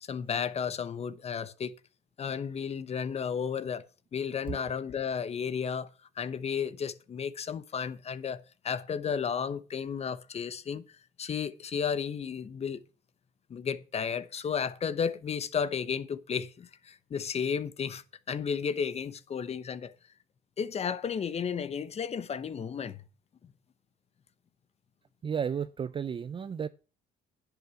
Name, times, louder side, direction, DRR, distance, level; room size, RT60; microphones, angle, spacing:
voice 1, 0.1-1.7 2.2-3.9 4.1-5.9 6.2-10.8 11.2-12.8 13.5-18.0 18.3-19.9 20.6-23.0, left 7 dB, 40° left, 1.0 m, -33 dB
voice 2, 25.2-26.7, right 7 dB, 30° right, 0.5 m, -33 dB
10.5 x 8.3 x 7.1 m
cardioid pair, 110°, 17 cm